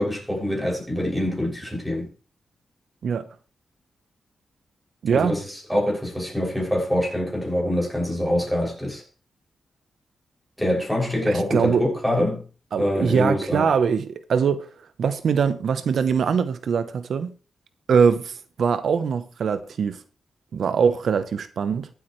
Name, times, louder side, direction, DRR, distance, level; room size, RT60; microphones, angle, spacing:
voice 1, 0.0-2.1 5.1-9.0 10.6-12.4 12.8-13.7, left 1 dB, ahead, 6.6 m, -25 dB
voice 2, 5.0-5.4 11.3-11.8 12.7-14.7 15.0-17.3 17.9-20.0 20.5-21.9, right 6 dB, 75° right, 0.9 m, -22 dB
22.5 x 8.5 x 3.2 m
wide cardioid pair, 105°, 0 cm